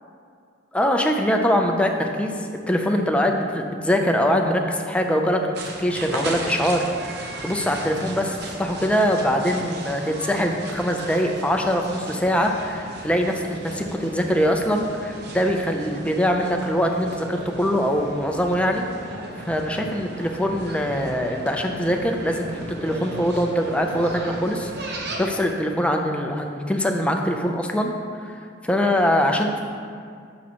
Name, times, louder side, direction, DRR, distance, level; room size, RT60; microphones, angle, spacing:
voice 1, 0.7-5.4 5.8-18.8 19.5-22.5 22.8-27.9 28.3-29.6, equal, 5° left, 3 dB, 0.5 m, -23 dB
sound 1, 5.5-25.4, right 2 dB, 55° right, 0.8 m, -36 dB
9.5 x 6.2 x 2.9 m, 2.2 s
head